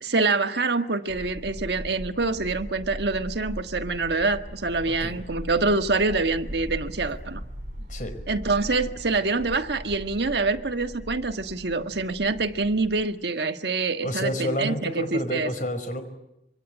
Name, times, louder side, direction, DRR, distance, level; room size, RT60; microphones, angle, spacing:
voice 1, 0.0-7.4 8.3-15.5, right 3 dB, 70° right, 1.5 m, -26 dB
sound 1, 1.1-13.1, equal, 45° right, 7.4 m, -39 dB
voice 2, 4.8-5.2 7.9-8.1 14.0-16.0, equal, 45° left, 5.0 m, -30 dB
26.0 x 24.0 x 9.1 m
head